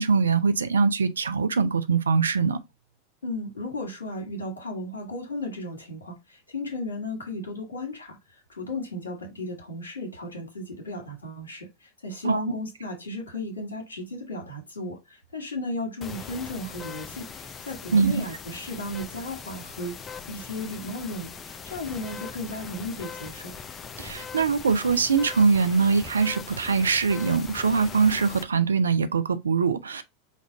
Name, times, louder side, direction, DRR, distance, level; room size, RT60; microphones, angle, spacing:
voice 1, 0.0-2.6 12.2-12.4 17.9-18.1 24.0-30.0, right 5 dB, 75° right, 0.5 m, -22 dB
voice 2, 3.2-20.0 20.3-23.6, left 1 dB, 70° left, 1.4 m, -35 dB
sound 1, 16.0-28.4, left 6 dB, 25° left, 0.5 m, -41 dB
5.3 x 2.5 x 3.8 m
figure-of-eight pair, 90°, 0 cm